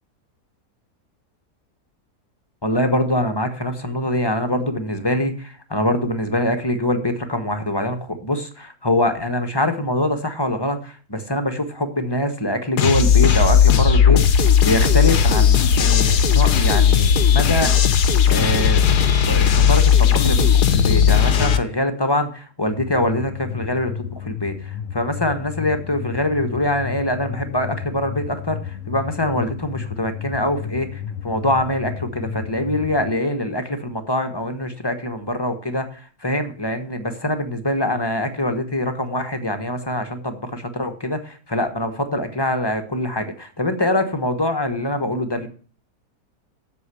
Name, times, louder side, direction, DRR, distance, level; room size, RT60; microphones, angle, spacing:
voice 1, 2.6-17.7 18.3-45.5, left 1 dB, 20° left, 8 dB, 1.1 m, -24 dB
sound 1, 12.8-21.6, left 7 dB, 80° left, 1.5 m, -16 dB
sound 2, 22.7-33.1, left 9 dB, 60° left, 0.9 m, -32 dB
8.2 x 6.9 x 8.3 m, 0.41 s
omnidirectional pair, 1.7 m